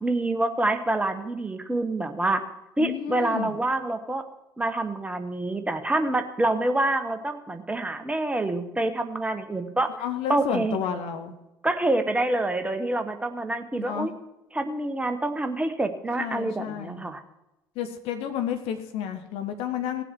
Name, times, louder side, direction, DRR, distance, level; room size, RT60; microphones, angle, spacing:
voice 1, 0.0-2.4 2.8-4.2 4.6-9.9 10.3-10.8 11.6-14.1 14.5-17.2, right 2 dB, 10° right, 7 dB, 1.2 m, -26 dB
voice 2, 2.8-3.5 10.0-11.3 13.8-14.1 16.2-17.1 17.7-20.0, left 9 dB, 60° left, 6 dB, 1.2 m, -31 dB
17.5 x 7.7 x 4.7 m, 0.95 s
figure-of-eight pair, 55°, 11 cm